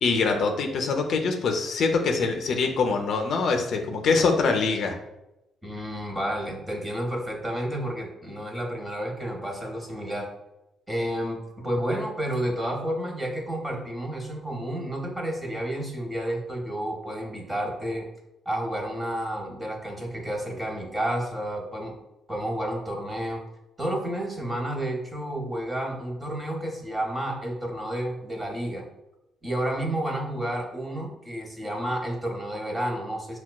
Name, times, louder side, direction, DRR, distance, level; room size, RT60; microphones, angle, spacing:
voice 1, 0.0-5.0, left 4 dB, 65° left, 3 dB, 0.5 m, -24 dB
voice 2, 5.6-10.3 10.9-11.4 11.6-18.1 18.4-21.9 22.3-23.4 23.8-28.8 29.4-33.4, right 1 dB, 15° right, 0 dB, 0.9 m, -30 dB
5.6 x 2.2 x 2.2 m, 0.91 s
cardioid pair, 90°, 0 cm